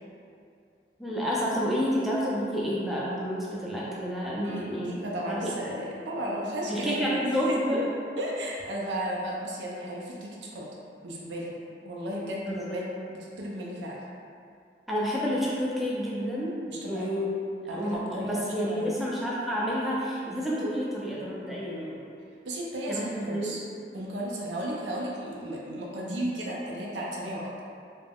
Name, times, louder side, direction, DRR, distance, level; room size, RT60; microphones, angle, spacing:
voice 1, 1.0-4.9 5.2-5.5 6.7-7.8 12.5-12.8 14.9-16.6 16.8-17.3 17.7-22.0 22.9-23.5, equal, ahead, -7 dB, 0.3 m, -29 dB
voice 2, 4.4-7.9 8.2-10.7 11.0-11.5 11.8-12.8 13.1-14.0 16.7-17.3 17.7-18.9 22.5-23.6 23.9-27.5, right 1 dB, 85° right, -4 dB, 0.4 m, -34 dB
2.3 x 2.0 x 3.3 m, 2.4 s
head